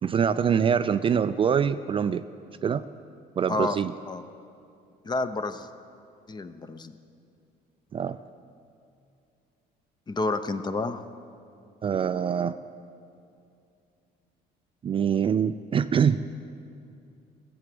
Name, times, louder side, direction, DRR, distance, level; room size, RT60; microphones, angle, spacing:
voice 1, 0.0-2.2 2.6-2.9 3.4-3.9 7.9-8.2 11.8-12.6 14.8-16.2, right 7 dB, 30° right, 11 dB, 0.3 m, -24 dB
voice 2, 5.0-5.7 6.3-6.9 10.1-11.0, left 2 dB, 25° left, 10 dB, 0.7 m, -29 dB
17.0 x 8.0 x 7.7 m, 2.5 s
cardioid pair, 110°, 17 cm